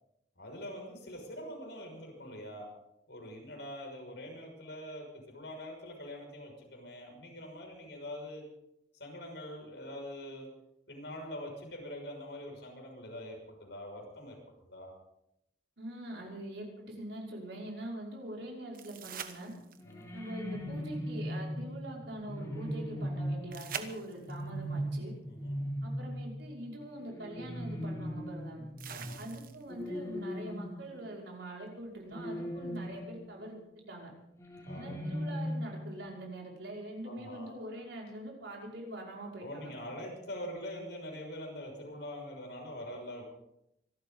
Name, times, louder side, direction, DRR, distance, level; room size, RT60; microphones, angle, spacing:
voice 1, 0.4-2.7 3.1-8.4 9.0-10.5 10.9-14.3 14.7-14.9 19.8-20.1 25.2-25.6 28.9-29.2 34.6-35.0 37.0-37.6 39.4-43.2, left 1 dB, 70° left, 0 dB, 6.4 m, -44 dB
voice 2, 15.8-19.5 20.1-25.1 25.8-28.6 29.2-34.1 34.7-39.7, right 1 dB, 85° right, -2 dB, 5.7 m, -43 dB
sound 1, 18.7-20.0 23.5-24.5 26.4-26.5 28.8-29.8 32.7-32.8, right 7 dB, 50° right, 1.2 m, -44 dB
sound 2, 19.8-31.4 32.1-33.4 34.4-36.0, equal, 15° left, 3.6 m, -39 dB
26.0 x 13.0 x 4.0 m, 0.80 s
head